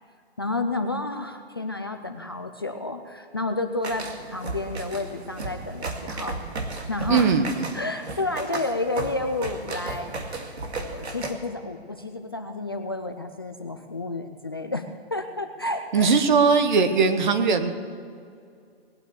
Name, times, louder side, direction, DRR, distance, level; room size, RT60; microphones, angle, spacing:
voice 1, 0.4-4.1 4.3-6.4 6.9-7.4 7.7-10.1 10.9-16.1, left 2 dB, 25° left, 5 dB, 0.4 m, -30 dB
sound 1, 3.8-11.3, right 3 dB, 85° right, 2.2 m, -34 dB
voice 2, 7.1-7.7 15.9-17.7, right 5 dB, 45° right, 9 dB, 1.3 m, -20 dB
19.5 x 9.0 x 6.9 m, 2.3 s
hypercardioid pair, 160°, 32 cm